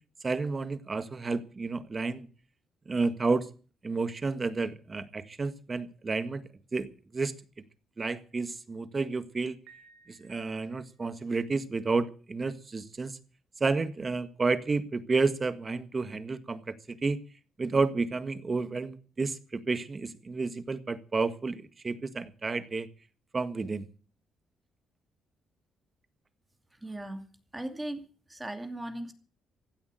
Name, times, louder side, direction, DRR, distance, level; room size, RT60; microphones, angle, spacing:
voice 1, 0.2-2.3 2.8-3.5 3.8-6.4 6.7-6.9 7.1-7.3 8.0-9.6 10.1-13.2 13.6-17.2 17.6-22.9 23.3-23.8, right 4 dB, 30° right, 12 dB, 1.6 m, -31 dB
Piano, 9.7-11.1, right 5 dB, 80° right, 2.5 m, -59 dB
voice 2, 26.8-27.2 27.5-29.1, right 1 dB, 10° right, 6 dB, 2.5 m, -38 dB
16.0 x 8.9 x 9.0 m, 0.39 s
cardioid pair, 90°, 0 cm